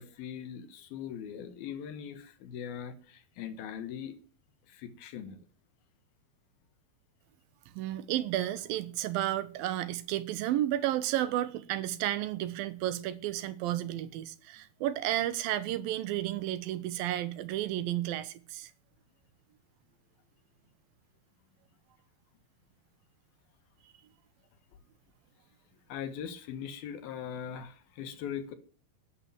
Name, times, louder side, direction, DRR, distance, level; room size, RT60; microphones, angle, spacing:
voice 1, 0.0-4.1 4.7-5.4 25.9-28.6, left 8 dB, 75° left, 3.2 m, -40 dB
voice 2, 7.8-18.7, right 13 dB, 75° right, 2.6 m, -32 dB
11.0 x 9.9 x 8.8 m
omnidirectional pair, 4.4 m